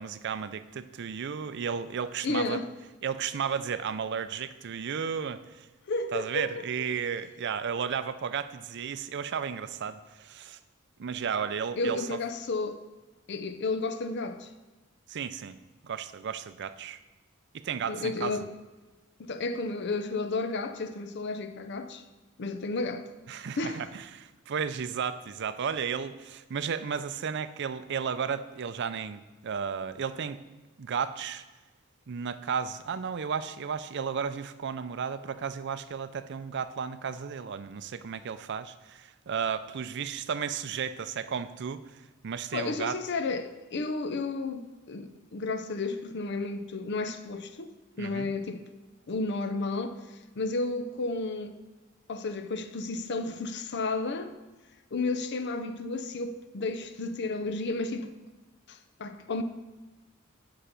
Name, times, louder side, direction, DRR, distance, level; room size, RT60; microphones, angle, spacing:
voice 1, 0.0-2.6 3.0-5.7 6.1-10.6 11.0-12.2 15.1-15.6 15.8-17.0 17.5-18.3 23.3-30.4 30.8-31.4 32.1-41.9 42.2-43.0 48.0-48.3, right 7 dB, 60° right, 0.5 m, -33 dB
voice 2, 2.2-2.7 5.9-6.5 11.8-12.8 13.3-14.5 17.9-18.5 19.2-22.0 22.4-23.1 23.6-23.9 42.5-48.6 49.1-50.0 50.4-51.6 52.1-54.3 54.9-58.1 58.7-59.4, left 3 dB, 55° left, 0.6 m, -32 dB
9.0 x 5.7 x 5.2 m
head